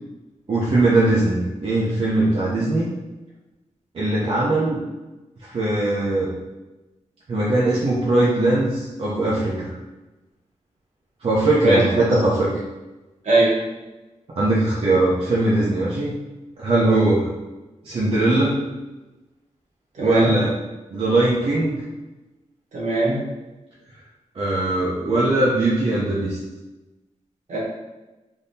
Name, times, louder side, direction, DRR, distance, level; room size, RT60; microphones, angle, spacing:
voice 1, 0.5-2.9 3.9-4.8 5.4-6.3 7.3-9.7 11.2-12.5 14.3-16.1 16.6-17.3 17.8-18.6 20.0-20.5 20.9-21.8 24.3-26.4, right 2 dB, 45° right, -6 dB, 0.5 m, -20 dB
voice 2, 11.6-12.0 13.2-13.6 16.8-17.0 20.0-20.3 22.7-23.2 27.5-27.6, right 2 dB, 65° right, -5 dB, 1.1 m, -20 dB
3.5 x 2.7 x 2.6 m, 1.1 s
wide cardioid pair, 180°, 13 cm